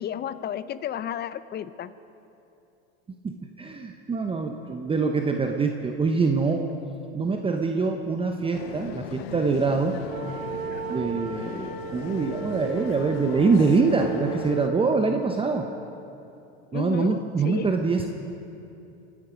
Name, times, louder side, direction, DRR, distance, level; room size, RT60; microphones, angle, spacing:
voice 1, 0.0-1.9 10.7-10.9 16.7-17.2 17.4-17.7, left 10 dB, 35° left, 15 dB, 0.6 m, -32 dB
voice 2, 3.1-6.6 7.1-10.0 10.9-15.7 16.7-18.1, right 4 dB, 20° right, 4 dB, 0.9 m, -24 dB
sound 1, 8.5-14.7, left 11 dB, 85° left, 0.7 m, -39 dB
sound 2, 10.1-15.0, right 8 dB, 85° right, 2.8 m, -35 dB
25.0 x 9.8 x 5.2 m, 2.8 s
hypercardioid pair, 95°, 30 cm